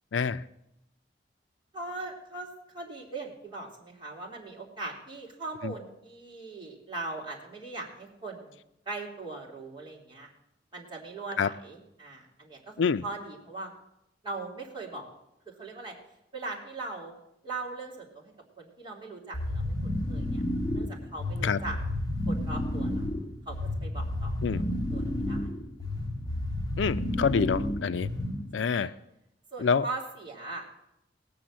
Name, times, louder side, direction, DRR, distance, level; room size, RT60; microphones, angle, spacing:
voice 1, 0.1-0.4 5.6-5.7 11.4-11.5 12.8-13.0 21.4-21.6 24.4-24.6 26.8-28.1 28.5-28.9 29.6-29.9, left 6 dB, 85° left, 14 dB, 0.4 m, -26 dB
voice 2, 1.7-2.5 2.7-8.6 8.9-10.3 10.7-12.8 13.0-13.7 14.2-15.1 15.5-15.9 16.3-17.1 17.4-18.3 18.6-20.4 20.7-21.8 22.3-23.1 23.5-23.6 23.8-24.6 24.9-25.5 28.6-28.9 29.5-30.8, right 3 dB, 25° right, -3 dB, 3.0 m, -40 dB
sound 1, 19.3-28.6, left 1 dB, 25° left, 1.7 m, -31 dB
18.5 x 6.9 x 7.4 m, 0.82 s
head